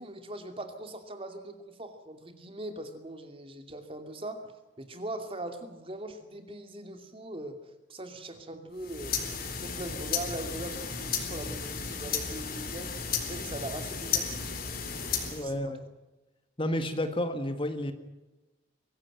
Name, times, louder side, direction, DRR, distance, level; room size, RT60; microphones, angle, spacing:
voice 1, 0.0-4.5 4.8-9.2 9.6-14.5 15.0-15.8, right 1 dB, 30° right, 7 dB, 2.6 m, -41 dB
sound 1, 8.8-15.5, left 6 dB, 50° left, 3.9 m, -34 dB
voice 2, 15.3-15.8 16.6-17.9, left 1 dB, 30° left, 8 dB, 1.7 m, -31 dB
23.5 x 16.5 x 9.1 m, 1.1 s
head